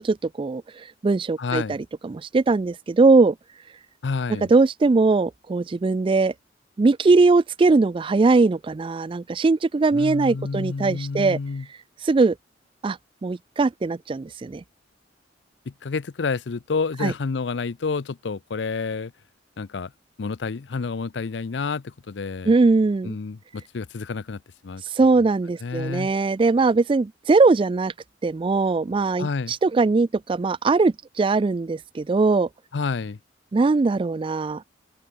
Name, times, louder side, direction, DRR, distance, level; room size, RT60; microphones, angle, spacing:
voice 1, 0.0-3.4 4.5-6.3 6.8-11.4 12.0-12.4 12.8-14.6 17.0-17.1 22.5-23.2 25.0-27.9 28.2-32.5 33.5-34.6, right 3 dB, 30° right, 0.3 m, -20 dB
voice 2, 1.4-1.8 4.0-4.5 9.9-11.7 15.7-19.1 19.6-19.9 20.2-22.5 23.0-24.8 25.6-26.1 29.2-29.5 32.7-33.2, left 4 dB, 65° left, 0.5 m, -29 dB
open air
head